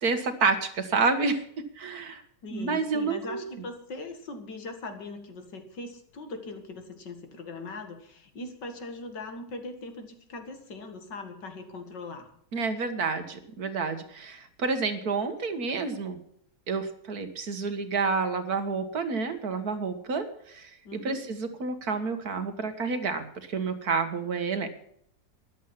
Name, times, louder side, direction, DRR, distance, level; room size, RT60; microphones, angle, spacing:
voice 1, 0.0-1.4 1.8-2.2 2.5-3.4 12.5-16.2 16.7-24.7, right 4 dB, 60° right, 8 dB, 1.9 m, -29 dB
voice 2, 2.4-12.3 20.8-21.2, left 2 dB, 70° left, 6 dB, 2.6 m, -40 dB
13.5 x 11.0 x 5.8 m, 0.67 s
omnidirectional pair, 1.9 m